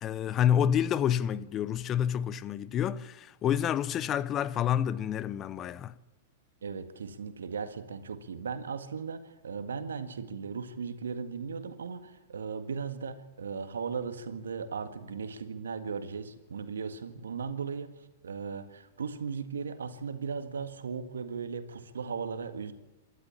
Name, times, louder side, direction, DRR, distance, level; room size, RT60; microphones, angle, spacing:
voice 1, 0.0-5.9, left 9 dB, 30° left, 0.8 m, -28 dB
voice 2, 6.6-22.7, right 5 dB, 80° right, 1.9 m, -37 dB
26.5 x 12.5 x 8.6 m
hypercardioid pair, 105°, 0 cm